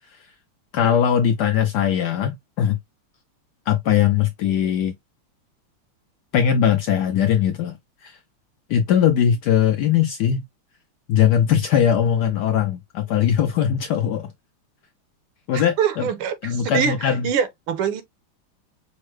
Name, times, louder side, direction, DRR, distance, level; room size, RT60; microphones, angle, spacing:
voice 1, 0.7-2.8 3.7-4.9 6.3-7.8 8.0-8.2 8.7-10.4 11.1-14.3 15.5-16.1 16.4-17.3, left 9 dB, 85° left, 0.9 m, -20 dB
voice 2, 15.5-18.0, right 7 dB, 80° right, 1.6 m, -24 dB
5.6 x 2.0 x 3.1 m
omnidirectional pair, 2.3 m